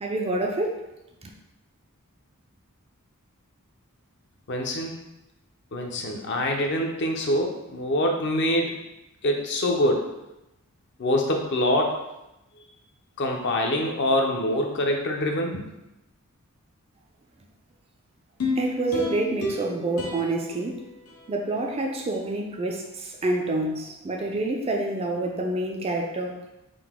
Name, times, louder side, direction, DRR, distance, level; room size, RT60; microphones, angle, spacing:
voice 1, 0.0-0.8 18.6-20.8 21.3-26.4, right 2 dB, 25° right, 1 dB, 0.3 m, -27 dB
voice 2, 4.5-5.0 5.7-8.8 9.2-10.1 11.0-11.9 13.2-15.6, left 1 dB, 50° left, 1 dB, 0.5 m, -25 dB
sound 1, 18.4-21.7 22.1-22.2, left 2 dB, 90° left, 0.8 m, -32 dB
3.9 x 2.6 x 3.6 m, 0.92 s
head